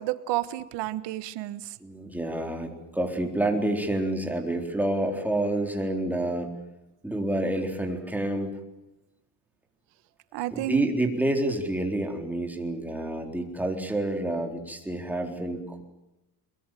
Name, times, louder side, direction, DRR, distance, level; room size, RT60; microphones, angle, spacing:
voice 1, 0.0-1.8 10.3-10.9, right 15 dB, 85° right, 13 dB, 1.5 m, -31 dB
voice 2, 1.8-6.5 7.0-8.5 10.5-15.8, right 1 dB, 5° right, 3 dB, 3.9 m, -28 dB
23.0 x 22.5 x 9.2 m, 0.93 s
cardioid pair, 140°, 41 cm